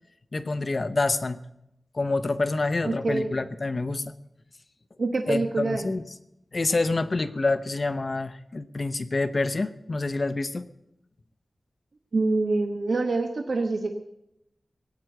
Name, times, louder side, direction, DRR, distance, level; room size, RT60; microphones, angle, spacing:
voice 1, 0.3-1.4 1.9-4.1 5.3-6.0 6.5-10.7, left 3 dB, 45° left, 11 dB, 0.8 m, -27 dB
voice 2, 2.8-3.3 5.0-5.9 12.1-14.0, right 3 dB, 65° right, 4 dB, 1.1 m, -26 dB
18.0 x 8.5 x 7.8 m, 0.84 s
wide cardioid pair, 105°, 0 cm